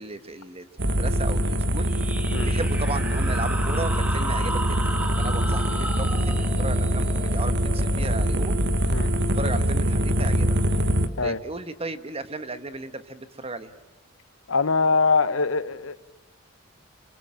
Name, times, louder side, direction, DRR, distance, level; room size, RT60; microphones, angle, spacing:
voice 1, 0.0-1.9 2.4-8.5 9.4-10.5 11.2-13.7, right 3 dB, 30° right, 11 dB, 1.4 m, -35 dB
sound 1, 0.8-11.1, equal, 55° right, 1.4 m, -24 dB
sound 2, 1.8-9.1, right 1 dB, 5° right, 1.7 m, -35 dB
voice 2, 14.5-16.0, left 4 dB, 70° left, 14 dB, 1.0 m, -23 dB
28.0 x 24.5 x 7.7 m, 1.1 s
head